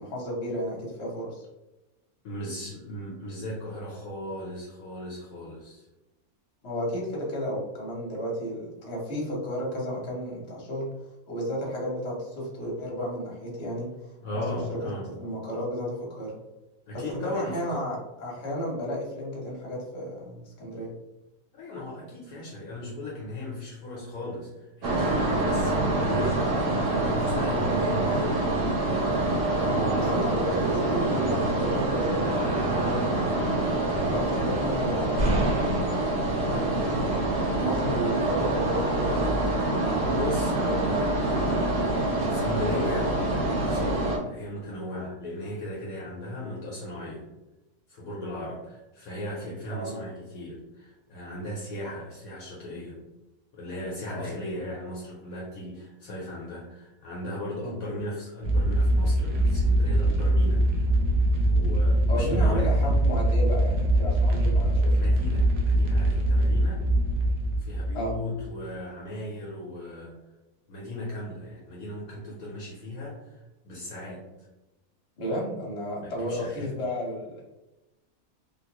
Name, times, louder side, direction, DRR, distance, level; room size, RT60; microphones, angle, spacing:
voice 1, 0.0-1.5 6.6-10.9 11.3-13.9 14.3-14.8 15.2-16.3 16.9-20.9 27.6-27.8 29.7-33.3 33.8-35.8 36.5-39.3 49.7-50.0 54.1-54.3 57.6-57.7 62.1-65.0 67.9-68.1 75.2-77.4, equal, 50° left, -3 dB, 1.2 m, -33 dB
voice 2, 2.2-5.9 14.2-15.1 16.9-17.8 21.5-26.4 26.8-28.5 36.5-36.9 40.0-47.3 47.9-53.0 53.5-60.8 61.5-62.8 65.0-66.9 67.6-70.1 70.7-73.4 73.6-74.2 76.0-76.7, left 1 dB, 70° left, -4 dB, 1.2 m, -36 dB
sound 1, 24.8-44.2, right 2 dB, 60° right, 1.0 m, -26 dB
sound 2, 58.4-68.5, right 1 dB, 90° right, 1.3 m, -23 dB
3.6 x 2.5 x 2.9 m, 0.99 s
omnidirectional pair, 1.6 m